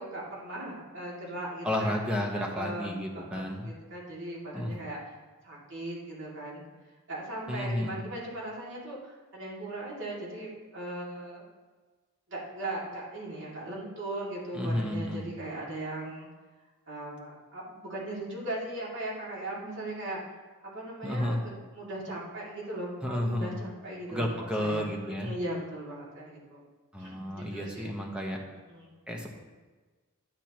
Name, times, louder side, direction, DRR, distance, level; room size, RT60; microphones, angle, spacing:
voice 1, 0.0-1.9 2.3-5.0 5.4-6.6 7.1-11.4 12.3-16.3 16.9-20.2 20.6-26.6 27.0-28.0 28.7-28.9, right 1 dB, 55° right, -5 dB, 2.4 m, -38 dB
voice 2, 1.6-3.7 4.5-4.7 7.5-7.9 14.5-15.3 21.0-21.4 23.0-23.5 24.1-25.3 26.9-28.4 29.1-29.3, left 1 dB, 5° right, 0 dB, 1.1 m, -31 dB
10.5 x 7.9 x 3.0 m, 1.3 s
head